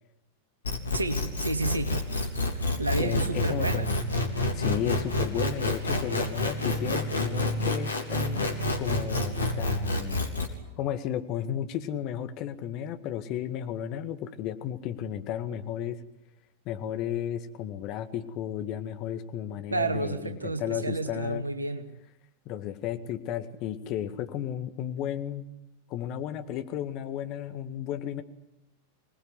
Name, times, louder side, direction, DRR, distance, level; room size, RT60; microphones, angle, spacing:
sound 1, 0.7-10.5, left 2 dB, 75° left, 3.4 m, -28 dB
voice 1, 0.9-2.0 2.8-3.9 19.7-21.8, right 3 dB, 80° right, 8 dB, 2.1 m, -30 dB
voice 2, 3.0-3.9 4.5-8.5 8.8-10.2 10.8-16.0 16.7-21.4 22.5-25.5 25.9-28.2, left 10 dB, 40° left, 9 dB, 1.9 m, -33 dB
25.5 x 20.0 x 9.8 m, 0.94 s
figure-of-eight pair, 90°, 0 cm